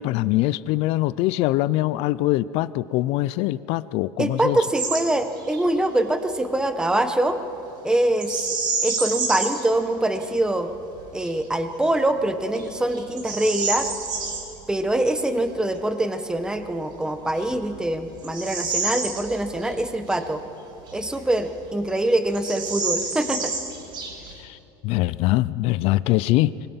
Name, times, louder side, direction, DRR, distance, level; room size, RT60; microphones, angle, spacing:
voice 1, 0.0-4.6 24.3-24.6 24.8-26.5, left 17 dB, 65° left, 17 dB, 0.5 m, -23 dB
voice 2, 4.2-7.4 7.8-8.5 8.8-10.7 11.1-13.9 14.7-20.4 20.9-23.5, right 1 dB, 5° right, 8 dB, 1.4 m, -24 dB
Bird vocalization bird call bird song, 4.7-5.0 5.4-5.6 8.2-9.7 10.2-10.3 10.9-11.3 11.9-12.0 12.5-14.4 16.6-16.7 17.3-19.7 20.1-20.2 20.9-21.7 21.9-22.0 22.3-24.4, right 4 dB, 45° right, 5.7 m, -29 dB
24.0 x 21.0 x 5.7 m, 2.8 s
cardioid pair, 130°, 11 cm